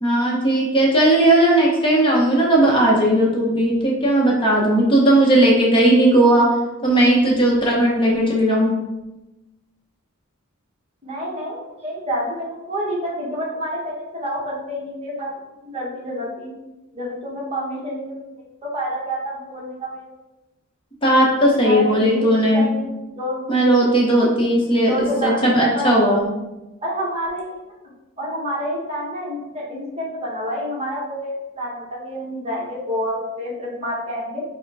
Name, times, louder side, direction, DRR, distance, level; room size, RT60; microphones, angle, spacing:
voice 1, 0.0-6.5 6.8-8.7 21.0-22.7 23.5-24.9 25.2-26.2, right 1 dB, 25° left, -3 dB, 0.8 m, -16 dB
voice 2, 11.0-15.3 15.6-16.5 16.9-18.2 18.6-20.1 21.5-23.4 24.8-25.9 26.8-27.6 28.2-34.4, equal, 30° right, -4 dB, 1.1 m, -28 dB
4.8 x 2.1 x 4.6 m, 1.0 s
head